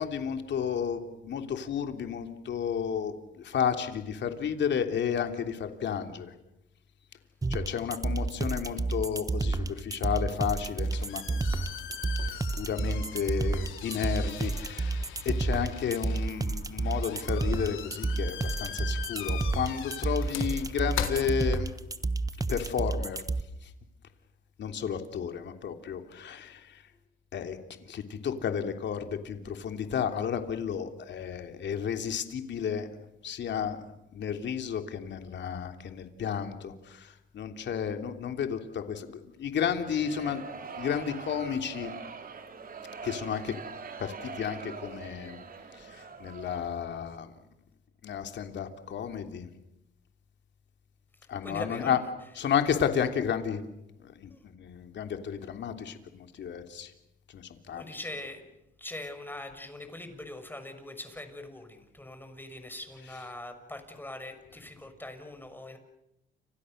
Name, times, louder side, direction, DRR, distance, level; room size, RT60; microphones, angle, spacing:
voice 1, 0.0-6.3 7.5-11.6 12.6-21.7 22.5-23.2 23.6-23.7 24.6-26.8 27.3-27.6 27.9-32.9 33.2-33.8 34.1-40.4 40.8-41.9 43.0-43.5 44.0-45.4 45.8-47.3 48.0-49.5 51.3-52.0 52.3-53.6 54.0-56.9 57.3-57.8 63.0-63.3, left 7 dB, 65° left, 6 dB, 3.2 m, -32 dB
sound 1, 7.4-23.4, right 3 dB, 15° right, 1.3 m, -30 dB
sound 2, 10.6-22.0, left 9 dB, 80° left, 3.9 m, -41 dB
sound 3, 39.7-46.9, right 5 dB, 45° right, 3.2 m, -43 dB
voice 2, 51.4-51.9 54.3-54.4 57.7-58.5 58.8-65.8, left 1 dB, 10° left, 7 dB, 6.0 m, -42 dB
30.0 x 27.0 x 6.7 m, 0.88 s
cardioid pair, 90°, 20 cm